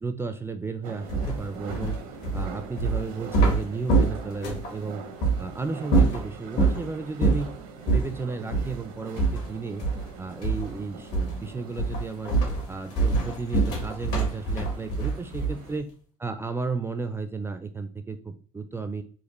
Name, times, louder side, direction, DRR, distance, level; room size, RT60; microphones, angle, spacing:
voice 1, 0.0-2.0 2.3-5.0 5.4-7.5 7.8-9.8 10.2-12.3 12.7-15.9 16.2-19.0, right 4 dB, 15° right, 9 dB, 0.3 m, -33 dB
sound 1, 0.8-15.8, right 6 dB, 80° right, 0.7 m, -44 dB
sound 2, 1.1-4.7 5.2-5.4 5.8-6.8 7.2-7.5 7.8-8.1 8.5-8.7 9.2-10.1 10.4-10.8 11.1-11.4 11.8-15.7, right 3 dB, 65° left, 1.7 m, -24 dB
4.1 x 2.4 x 3.0 m, 0.44 s
hypercardioid pair, 85°, 18 cm